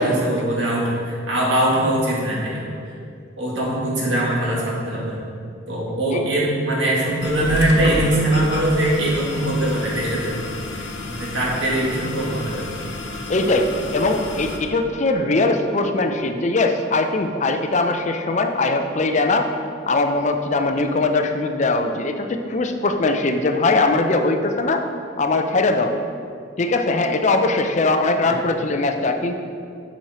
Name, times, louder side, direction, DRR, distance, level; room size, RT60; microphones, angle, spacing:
voice 1, 0.0-3.0 3.4-5.2 5.7-10.4 10.7-12.7 28.3-28.4, right 1 dB, 75° right, -4 dB, 2.1 m, -22 dB
sound 1, 7.2-14.6, left 2 dB, 70° left, 1.1 m, -30 dB
voice 2, 13.3-19.5 19.9-24.8 25.2-26.0 26.6-29.3, left 2 dB, 40° left, 6 dB, 0.5 m, -21 dB
7.8 x 6.4 x 4.2 m, 2.3 s
head